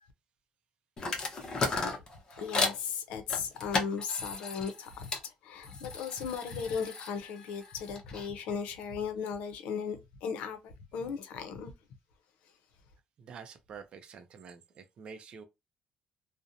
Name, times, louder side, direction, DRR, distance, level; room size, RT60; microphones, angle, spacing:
sound 1, 1.0-2.8 3.3-5.3 5.6-8.3, left 3 dB, 35° left, 0.7 m, -35 dB
voice 1, 2.4-11.7, left 6 dB, 90° left, 0.6 m, -37 dB
voice 2, 13.2-15.4, right 6 dB, 50° right, 0.4 m, -48 dB
2.7 x 2.0 x 2.5 m
cardioid pair, 120°, 2 cm